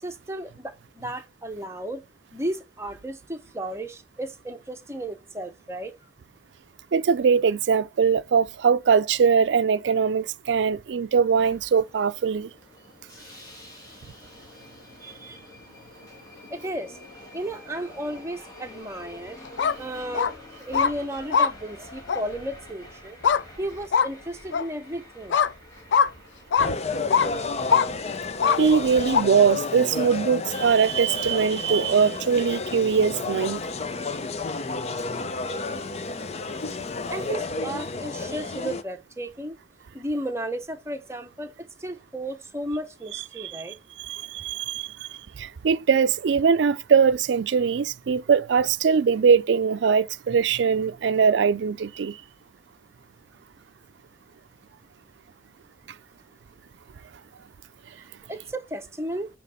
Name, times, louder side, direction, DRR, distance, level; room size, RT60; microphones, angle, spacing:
voice 1, 0.0-2.0 2.3-5.9 15.0-15.4 16.5-17.0 17.3-19.4 19.8-20.3 20.7-23.2 23.6-25.4 37.1-39.6 39.9-43.8 58.3-59.3, right 1 dB, 15° right, 0.9 m, -34 dB
voice 2, 6.9-12.5 28.6-33.6 43.4-43.6 44.0-45.1 45.4-52.2, right 6 dB, 80° right, 0.4 m, -21 dB
Subway metro underground, 11.4-29.3, left 1 dB, 20° left, 2.4 m, -47 dB
sound 1, 19.4-19.7 20.1-20.3 20.7-20.9 21.3-21.5 22.1-22.2 23.2-23.4 23.9-24.1 24.5-24.6 25.3-25.5 25.9-26.1 26.5-26.7 27.1-27.3 27.7-27.9 28.4-28.6 29.1-29.2, left 6 dB, 85° left, 0.4 m, -20 dB
sound 2, 26.6-38.8, left 3 dB, 35° left, 0.6 m, -31 dB
9.1 x 3.0 x 5.6 m
head